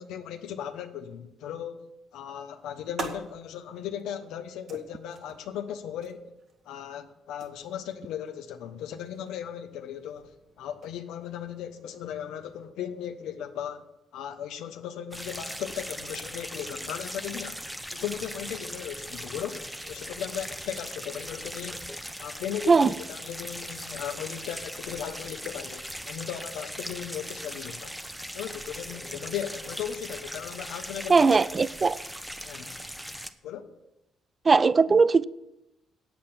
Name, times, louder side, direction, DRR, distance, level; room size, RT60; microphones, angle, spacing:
voice 1, 0.0-1.8 2.1-6.3 6.6-13.8 14.1-17.6 17.9-21.8 22.2-27.9 28.3-31.3 32.4-32.8 33.4-33.7, left 9 dB, 90° left, 1.0 m, -37 dB
sound 1, 2.2-12.7, right 3 dB, 60° right, 1.9 m, -47 dB
sound 2, 15.1-33.3, equal, 5° right, 0.9 m, -39 dB
voice 2, 31.1-32.0 34.5-35.2, right 4 dB, 35° right, 0.4 m, -19 dB
8.7 x 8.4 x 7.5 m
cardioid pair, 90°, 0 cm